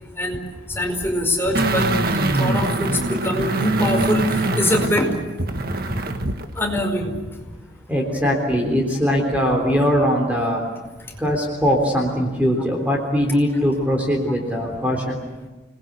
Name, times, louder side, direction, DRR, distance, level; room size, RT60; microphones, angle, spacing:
voice 1, 0.7-5.2 6.5-7.1, left 1 dB, 10° left, 2 dB, 5.0 m, -23 dB
sound 1, 1.5-6.4 6.8-6.9, right 2 dB, 50° right, 1.7 m, -23 dB
voice 2, 7.9-10.6 11.2-15.2, equal, 10° right, 0 dB, 3.6 m, -21 dB
29.5 x 21.0 x 8.3 m, 1.2 s
head